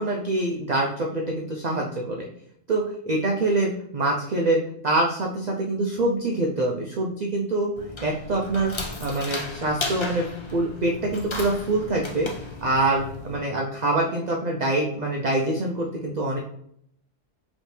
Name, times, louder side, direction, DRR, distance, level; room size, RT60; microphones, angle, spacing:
voice 1, 0.0-2.3 2.7-7.7 8.0-8.7 9.0-10.2 10.5-12.3 12.6-16.4, right 2 dB, 55° right, 0 dB, 0.5 m, -25 dB
sound 1, 7.8-13.4, left 3 dB, 40° left, 0.4 m, -35 dB
5.1 x 3.1 x 3.2 m, 0.70 s
omnidirectional pair, 1.3 m